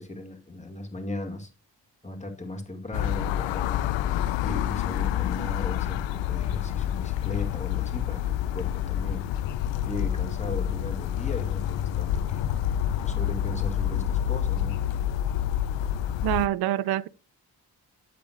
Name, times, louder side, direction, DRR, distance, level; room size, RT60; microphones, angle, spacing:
voice 1, 0.0-1.5 2.0-4.0 4.4-9.3 9.8-12.4 13.0-14.8, left 2 dB, 15° left, 2.2 m, -37 dB
sound 1, 2.9-16.5, left 11 dB, 80° left, 0.6 m, -28 dB
voice 2, 16.2-17.1, right 13 dB, 60° right, 0.5 m, -25 dB
8.4 x 7.6 x 2.5 m
supercardioid pair, 50°, 43 cm